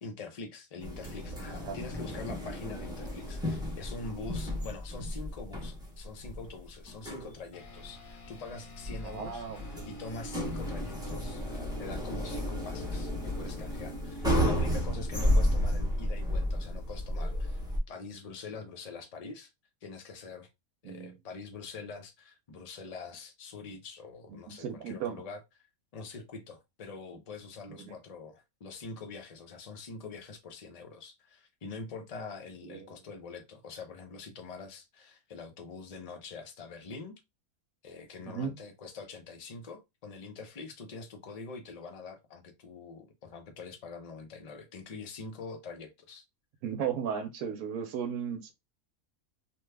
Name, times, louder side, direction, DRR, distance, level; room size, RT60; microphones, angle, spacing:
voice 1, 0.0-19.5 19.8-20.5 20.8-25.4 25.9-37.2 37.8-46.2, left 4 dB, 65° left, 0.3 m, -44 dB
sound 1, 0.8-17.8, equal, 5° right, 0.5 m, -32 dB
sound 2, 7.5-17.2, left 3 dB, 40° left, 0.8 m, -50 dB
voice 2, 9.0-9.8 20.8-21.1 24.3-25.2 27.8-27.9 32.7-32.9 38.3-38.5 46.6-48.5, right 7 dB, 80° right, 1.1 m, -35 dB
2.9 x 2.2 x 3.2 m
omnidirectional pair, 1.5 m